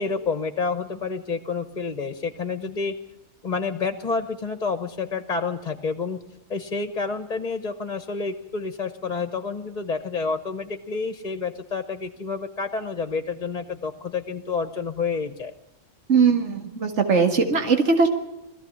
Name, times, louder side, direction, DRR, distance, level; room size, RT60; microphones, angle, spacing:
voice 1, 0.0-3.0 3.4-6.2 6.5-15.5, left 4 dB, 35° left, 9 dB, 1.2 m, -29 dB
voice 2, 16.1-18.1, right 5 dB, 65° right, 4 dB, 2.3 m, -20 dB
21.5 x 15.0 x 8.6 m, 0.93 s
omnidirectional pair, 1.3 m